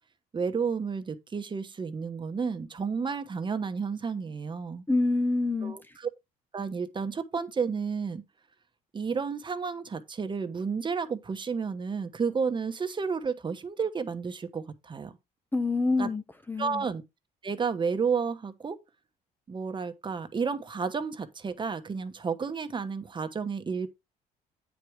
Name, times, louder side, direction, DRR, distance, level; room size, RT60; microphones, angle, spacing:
voice 1, 0.3-4.8 5.6-6.1 6.5-8.2 8.9-15.2 16.0-16.1 16.6-17.0 17.4-18.8 19.5-23.9, right 5 dB, 30° right, 1.1 m, -31 dB
voice 2, 4.9-5.8 15.5-16.8, left 3 dB, 10° left, 0.7 m, -27 dB
9.2 x 4.8 x 4.8 m
cardioid pair, 110°, 17 cm